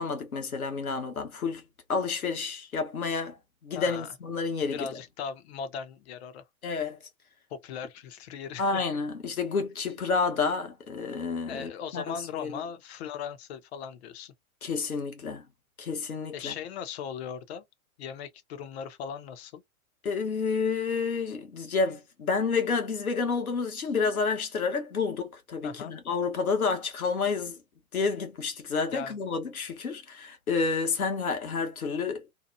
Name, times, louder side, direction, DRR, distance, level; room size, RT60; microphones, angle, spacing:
voice 1, 0.0-1.6 1.9-3.4 3.6-4.9 6.6-7.0 8.6-12.5 14.6-15.4 15.8-16.5 20.0-27.6 27.9-32.2, left 4 dB, 80° left, 1.1 m, -29 dB
voice 2, 3.7-4.1 4.7-6.4 7.5-8.8 11.5-14.3 16.3-17.6 18.0-19.6 25.6-25.9 28.9-29.2, left 7 dB, 50° left, 0.7 m, -38 dB
2.8 x 2.3 x 2.4 m
figure-of-eight pair, 105°, 43 cm